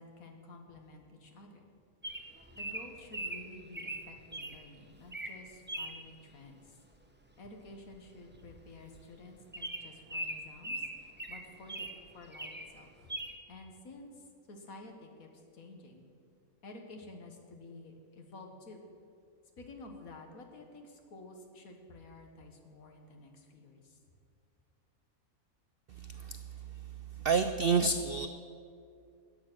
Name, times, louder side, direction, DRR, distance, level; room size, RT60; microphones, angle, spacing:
voice 1, 0.0-1.6 2.5-6.8 7.4-13.1 13.5-16.0 16.6-18.8 19.6-24.0, left 2 dB, 70° left, 3 dB, 1.9 m, -51 dB
Bird vocalization bird call bird song, 2.0-4.6 5.0-5.4 5.7-6.0 7.4-7.7 7.9-8.0 8.3-8.5 8.9-9.0 9.5-12.0 12.3-12.7 13.1-13.3, right 1 dB, 10° right, 0.6 m, -40 dB
voice 2, 26.0-26.4 27.2-28.3, right 5 dB, 85° right, 10 dB, 0.5 m, -29 dB
13.5 x 9.2 x 6.1 m, 2.4 s
omnidirectional pair, 1.5 m